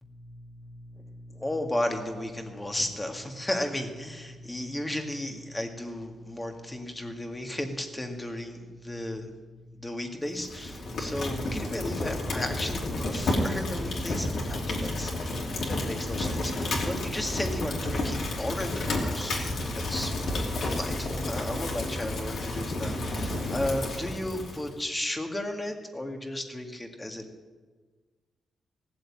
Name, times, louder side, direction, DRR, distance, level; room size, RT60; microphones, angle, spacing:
voice 1, 0.0-9.3 9.7-15.4 15.7-20.1 20.6-27.2, left 1 dB, 15° left, 4 dB, 1.9 m, -34 dB
Fire, 10.3-24.7, left 1 dB, 65° left, 3.3 m, -31 dB
16.5 x 7.9 x 8.6 m, 1.4 s
cardioid pair, 110°, 0 cm